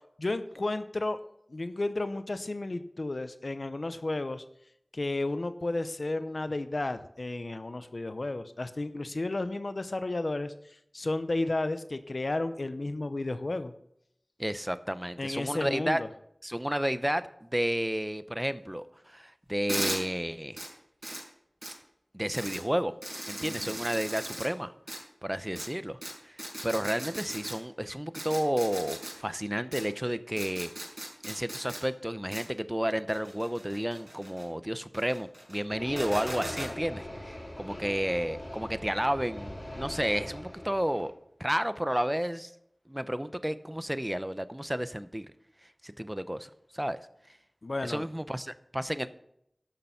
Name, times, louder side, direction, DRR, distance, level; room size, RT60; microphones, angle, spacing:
voice 1, 0.2-1.2 1.5-4.4 4.9-13.7 15.2-16.1 23.4-23.8 47.6-48.0, left 2 dB, 65° left, 11 dB, 0.6 m, -33 dB
voice 2, 14.4-16.0 16.4-20.6 22.1-22.9 23.3-24.7 25.2-26.0 26.2-30.7 31.2-41.1 41.4-42.5 42.9-45.3 45.8-47.0 47.8-49.1, equal, 10° right, 12 dB, 0.7 m, -31 dB
sound 1, 19.7-20.0 20.6-20.7 21.0-21.2 21.6-21.7 22.3-22.6 23.0-24.5 24.9-25.0 25.5-25.7 26.0-26.1 26.4-27.5 28.1-29.1 29.7-29.8 30.4-31.8 32.3-32.4 33.1-34.4 34.9-35.6 35.9-36.7, right 1 dB, 30° right, 5.5 m, -37 dB
sound 2, 35.7-41.1, left 1 dB, 40° left, 3.9 m, -41 dB
12.0 x 6.8 x 5.7 m, 0.75 s
wide cardioid pair, 50°, 0 cm